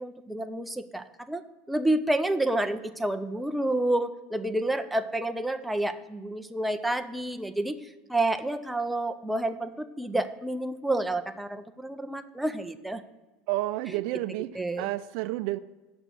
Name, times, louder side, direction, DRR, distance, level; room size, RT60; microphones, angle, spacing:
voice 1, 0.0-1.4 1.7-7.8 8.1-13.0 13.9-14.0 14.5-14.9, right 1 dB, 5° right, 7 dB, 0.5 m, -29 dB
voice 2, 13.5-14.5 14.8-15.6, right 17 dB, 60° right, 13 dB, 0.4 m, -30 dB
8.1 x 6.0 x 6.7 m, 1.2 s
supercardioid pair, 140°, 0 cm